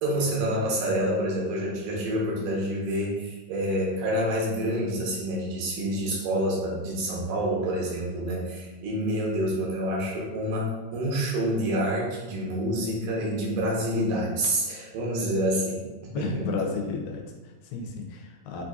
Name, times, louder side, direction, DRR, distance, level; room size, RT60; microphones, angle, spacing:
voice 1, 0.0-16.4, equal, 90° right, -4 dB, 2.6 m, -27 dB
voice 2, 16.1-18.6, left 4 dB, 85° left, 2 dB, 2.2 m, -33 dB
6.0 x 2.7 x 2.3 m, 1.2 s
omnidirectional pair, 3.8 m